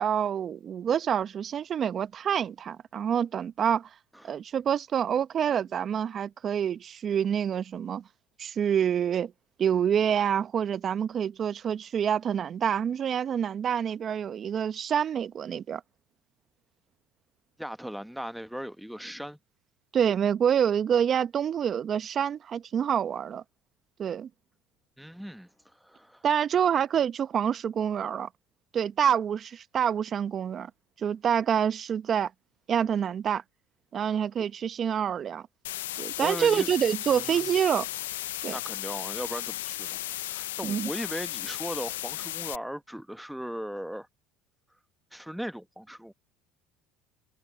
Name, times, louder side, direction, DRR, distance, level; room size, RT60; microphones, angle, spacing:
voice 1, 0.0-3.9 4.2-8.0 8.4-9.3 9.6-15.8 19.9-23.4 24.0-24.3 26.2-28.3 28.7-30.7 31.0-32.3 32.7-33.4 33.9-35.4 36.0-37.9 38.4-38.5 40.6-40.9, right 8 dB, 45° right, 0.8 m, -27 dB
voice 2, 17.6-19.4 25.0-26.2 34.0-34.5 36.2-36.7 37.1-37.4 38.5-40.0 40.3-44.1 45.1-46.1, equal, ahead, 1.1 m, -38 dB
sound 1, 35.6-42.6, left 15 dB, 85° left, 0.4 m, -35 dB
hypercardioid pair, 80°, 0 cm